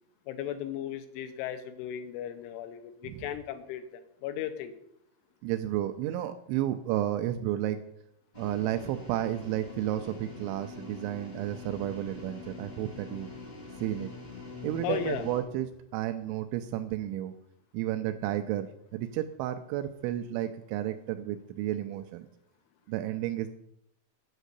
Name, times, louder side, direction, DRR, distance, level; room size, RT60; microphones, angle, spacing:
voice 1, 0.3-4.7 14.8-15.3, left 10 dB, 80° left, 9 dB, 3.1 m, -36 dB
voice 2, 5.4-7.8 8.4-13.3 13.8-14.1 14.6-17.3 17.7-22.3 22.9-23.5, right 12 dB, 80° right, 8 dB, 2.8 m, -32 dB
sound 1, 8.3-15.4, left 3 dB, 25° left, 1.0 m, -44 dB
9.2 x 6.3 x 8.1 m, 0.76 s
omnidirectional pair, 5.8 m